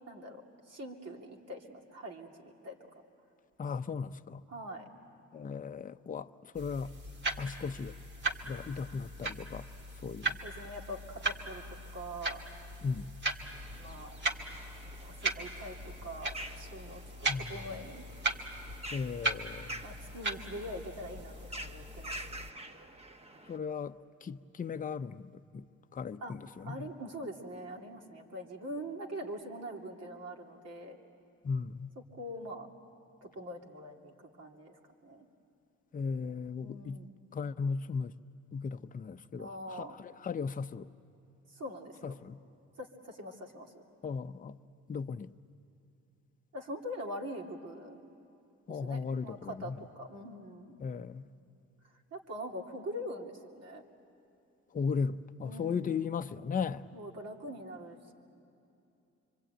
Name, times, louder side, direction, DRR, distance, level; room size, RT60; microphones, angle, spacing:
voice 1, 0.1-0.4 0.7-2.8 4.5-4.9 10.4-11.6 11.9-12.4 13.8-14.2 15.0-18.0 19.8-22.2 26.2-26.4 26.7-31.0 32.1-32.7 33.2-35.3 36.6-37.1 39.4-40.0 41.5-42.2 42.8-43.7 46.5-48.0 48.7-50.8 52.1-53.8 55.4-56.0 56.9-58.1, equal, 55° right, 1 dB, 2.9 m, -43 dB
voice 2, 3.6-4.4 5.3-6.9 7.4-7.9 8.4-9.7 10.0-10.4 12.8-13.1 17.3-17.6 18.9-19.8 23.5-25.7 25.9-26.9 31.4-31.9 35.9-37.0 37.3-38.1 38.5-40.9 42.0-42.4 44.0-44.6 44.9-45.3 48.7-49.8 50.8-51.2 54.7-56.9, left 5 dB, 30° left, 9 dB, 0.6 m, -36 dB
sound 1, 6.5-22.5, right 2 dB, 35° right, 2.0 m, -38 dB
sound 2, 13.4-23.6, right 1 dB, 20° right, 1.1 m, -48 dB
25.5 x 25.0 x 9.0 m, 2.8 s
cardioid pair, 90°, 30 cm